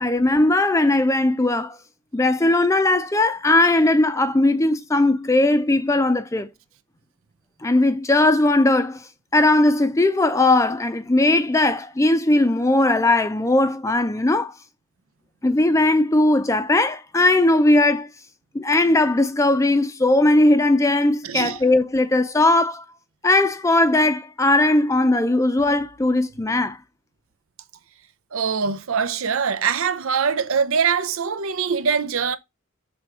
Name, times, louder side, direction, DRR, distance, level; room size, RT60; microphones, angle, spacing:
voice 1, 0.0-1.8 2.1-6.5 7.6-9.0 9.3-14.5 15.4-18.1 18.5-22.8 23.2-26.8, left 2 dB, 15° left, 0.4 m, -18 dB
voice 2, 21.2-21.6 28.3-32.4, right 6 dB, 80° right, 0.7 m, -23 dB
6.1 x 3.4 x 4.8 m
head